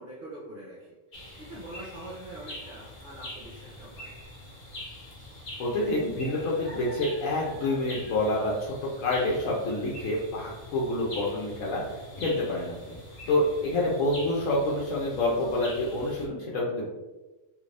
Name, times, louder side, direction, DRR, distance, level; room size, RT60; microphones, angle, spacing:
voice 1, 0.0-4.2, right 1 dB, 50° right, -7 dB, 0.9 m, -44 dB
sound 1, 1.1-16.3, left 1 dB, 50° left, 0.7 m, -44 dB
voice 2, 5.6-13.0 13.3-16.9, left 1 dB, 90° left, -4 dB, 1.0 m, -28 dB
2.7 x 2.5 x 3.2 m, 1.1 s
omnidirectional pair, 1.3 m